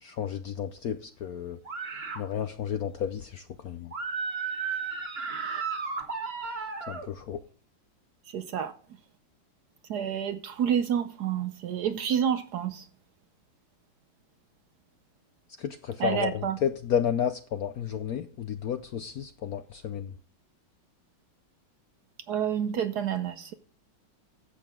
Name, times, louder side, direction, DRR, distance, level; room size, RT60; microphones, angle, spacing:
voice 1, 0.0-1.6 2.2-3.9 6.9-7.4 15.6-20.1, left 8 dB, 70° left, 0.9 m, -32 dB
sound 1, 1.7-2.2 3.9-7.1, right 5 dB, 35° right, 1.5 m, -33 dB
voice 2, 8.3-8.7 9.9-12.9 16.0-16.6 22.3-23.5, right 8 dB, 65° right, 1.1 m, -29 dB
11.5 x 7.9 x 3.6 m
omnidirectional pair, 2.2 m